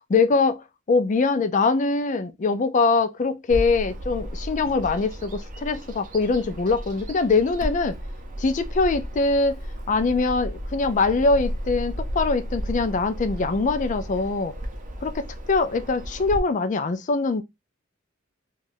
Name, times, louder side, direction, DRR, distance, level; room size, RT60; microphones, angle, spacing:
voice 1, 0.1-8.0 8.4-9.6 9.9-14.5 15.0-17.4, left 3 dB, 40° left, 0.4 m, -23 dB
Bird vocalization bird call bird song, 3.5-16.4, equal, 40° right, 0.6 m, -34 dB
2.6 x 2.3 x 3.4 m
head